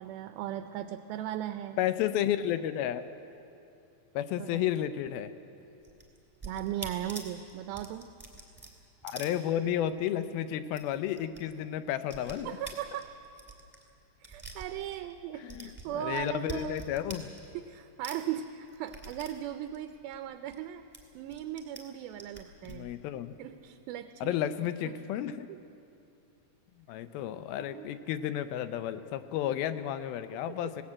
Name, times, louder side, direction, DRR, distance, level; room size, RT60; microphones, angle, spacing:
voice 1, 0.0-1.8 4.4-4.8 6.4-8.1 12.5-13.2 14.2-16.8 17.5-20.8 21.2-22.9 23.4-24.4 24.8-25.0 25.5-25.6 27.6-28.0 30.3-30.6, right 11 dB, 80° right, 9 dB, 2.4 m, -38 dB
voice 2, 1.8-3.0 4.1-5.3 9.0-12.5 15.4-17.3 22.7-23.3 24.2-25.5 26.9-30.8, left 11 dB, 80° left, 11 dB, 2.6 m, -32 dB
sound 1, 5.8-10.0 10.3-10.4 10.6-11.4 11.7-15.2 15.5-17.7 18.0-20.6 20.9-21.8 22.1-22.8, right 3 dB, 5° right, 2.0 m, -46 dB
20.5 x 18.0 x 8.7 m, 2.7 s
omnidirectional pair, 4.4 m